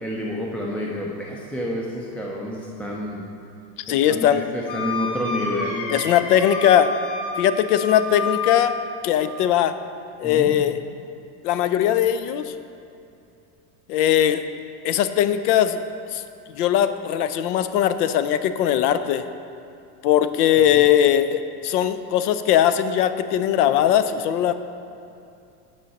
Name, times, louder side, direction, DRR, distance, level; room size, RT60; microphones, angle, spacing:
voice 1, 0.0-3.3 3.9-6.0 10.2-10.5 20.7-20.9, equal, 5° left, -3 dB, 0.3 m, -29 dB
voice 2, 3.9-4.4 5.9-6.9 7.4-8.7 9.0-9.7 10.2-10.8 11.4-12.5 13.9-14.5 14.8-15.8 16.1-16.2 16.5-19.2 20.0-24.5, left 10 dB, 85° left, 11 dB, 0.6 m, -20 dB
Wind instrument woodwind instrument, 4.7-9.0, left 3 dB, 40° left, 1.2 m, -30 dB
8.9 x 5.6 x 4.1 m, 2.5 s
supercardioid pair, 115°, 45 cm